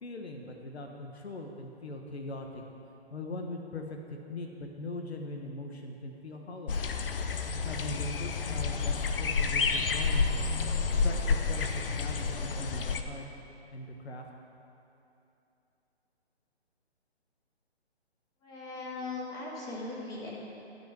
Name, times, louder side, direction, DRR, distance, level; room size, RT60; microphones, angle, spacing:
voice 1, 0.0-2.6 3.1-6.8 7.6-10.5 10.9-13.2 13.7-14.3, left 2 dB, 75° left, 3 dB, 1.3 m, -41 dB
sound 1, 6.7-13.0, left 4 dB, 55° left, 0.8 m, -30 dB
voice 2, 18.4-20.3, left 3 dB, 10° left, -5 dB, 1.8 m, -39 dB
12.5 x 5.4 x 7.4 m, 2.8 s
figure-of-eight pair, 145°, 32 cm